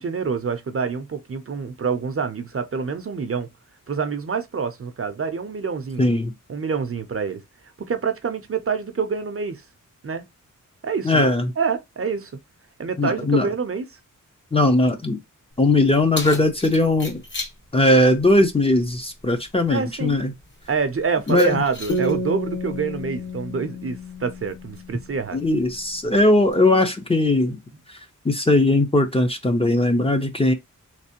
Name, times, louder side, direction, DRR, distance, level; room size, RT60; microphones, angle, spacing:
voice 1, 0.0-3.5 3.9-6.1 6.5-7.4 7.8-9.6 10.0-10.2 10.8-12.3 12.8-13.9 19.7-20.2 20.7-25.4, right 5 dB, 45° right, 0.5 m, -26 dB
voice 2, 6.0-6.3 11.0-11.5 13.0-13.5 14.5-15.2 15.6-17.2 17.7-20.3 21.3-21.6 25.3-27.6 27.9-28.0 28.2-30.5, left 1 dB, 20° left, 0.5 m, -19 dB
Keys jangling, 15.5-26.5, left 2 dB, 35° left, 1.1 m, -41 dB
sound 1, 21.9-25.4, equal, 55° left, 1.3 m, -30 dB
3.3 x 3.0 x 2.8 m
wide cardioid pair, 105°, 32 cm